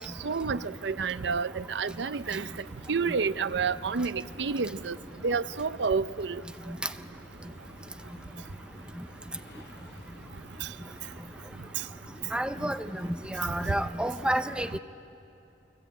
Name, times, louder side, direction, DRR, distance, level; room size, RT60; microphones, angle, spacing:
voice 1, 0.2-2.4 2.9-5.0 5.2-6.4 13.7-13.8, right 5 dB, 80° right, 0.6 m, -29 dB
sound 1, 2.2-13.9, left 1 dB, 85° left, 4.2 m, -51 dB
voice 2, 12.3-14.8, right 1 dB, 5° right, 0.7 m, -30 dB
29.5 x 21.5 x 8.5 m
head